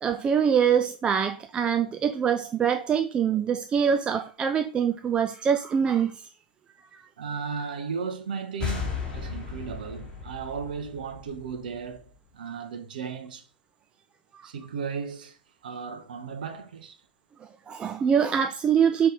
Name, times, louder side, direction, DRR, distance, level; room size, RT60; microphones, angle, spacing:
voice 1, 0.0-6.2 6.9-7.0 17.7-19.1, right 7 dB, 20° right, 0.4 m, -24 dB
voice 2, 7.2-13.5 14.4-15.4 15.6-17.0, right 6 dB, 65° right, 1.1 m, -35 dB
sound 1, 8.6-12.1, left 6 dB, 15° left, 2.2 m, -35 dB
5.9 x 3.4 x 5.1 m
figure-of-eight pair, 105°, 5 cm